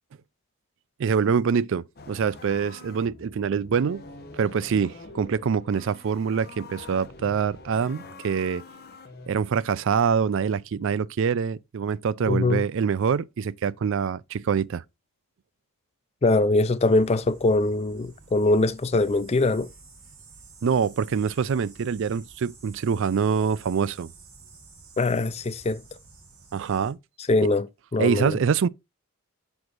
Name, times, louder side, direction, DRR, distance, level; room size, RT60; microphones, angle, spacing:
voice 1, 1.0-4.0 4.4-8.6 9.3-14.8 20.6-24.1 26.5-27.0 28.0-28.7, right 6 dB, 60° right, 0.4 m, -25 dB
sound 1, 2.0-9.3, left 3 dB, 45° left, 1.1 m, -45 dB
voice 2, 12.3-12.6 16.2-19.7 25.0-25.8 27.3-27.7 27.9-28.4, left 2 dB, 30° left, 0.4 m, -22 dB
sound 2, 16.8-26.9, right 4 dB, 85° right, 3.0 m, -51 dB
7.7 x 6.3 x 2.6 m
head